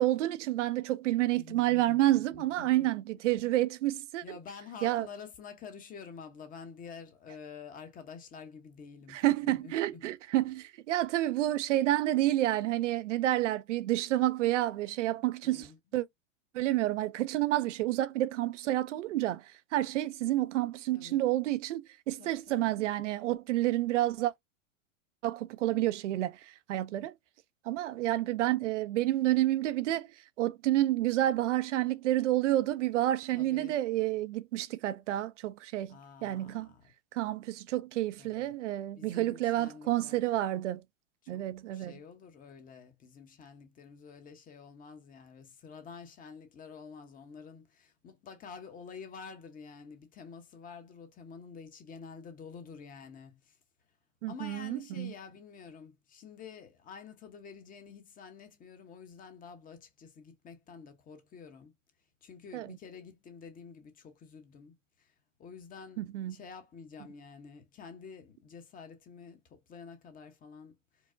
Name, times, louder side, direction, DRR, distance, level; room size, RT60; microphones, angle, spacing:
voice 1, 0.0-4.2 4.8-5.1 9.1-15.7 15.9-16.1 16.5-24.3 25.2-27.1 27.7-30.1 30.4-36.7 37.1-40.8 41.3-41.9 54.2-55.1 62.5-62.8 66.0-66.4, right 15 dB, 65° right, 0.5 m, -29 dB
voice 2, 1.3-2.9 4.2-10.0 15.4-15.8 20.9-21.2 22.2-22.7 33.3-33.8 35.9-36.9 38.2-38.5 39.0-40.2 41.2-41.4 41.7-53.6 54.3-61.7 62.2-65.1 65.4-71.1, left 6 dB, 20° left, 0.8 m, -49 dB
4.6 x 2.0 x 2.5 m
hypercardioid pair, 120°, 39 cm